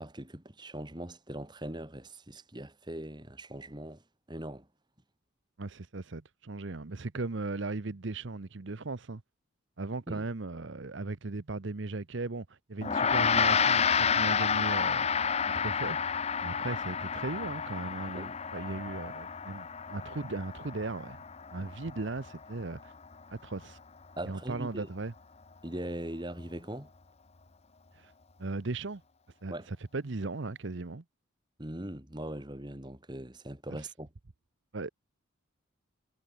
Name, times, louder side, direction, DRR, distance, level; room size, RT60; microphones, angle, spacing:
voice 1, 0.0-4.0 4.3-4.7 10.1-10.3 18.1-18.3 24.2-24.9 25.6-26.9 29.5-29.7 31.6-34.1, right 1 dB, 20° right, 2.1 m, -40 dB
voice 2, 5.6-9.2 9.8-15.1 15.5-16.0 16.4-21.2 21.5-22.9 23.3-23.8 24.2-25.1 27.9-28.1 28.4-29.0 29.4-31.0 33.7-33.9 34.7-34.9, right 3 dB, 55° right, 0.8 m, -37 dB
Gong, 12.8-22.4, left 6 dB, 30° left, 0.7 m, -30 dB
head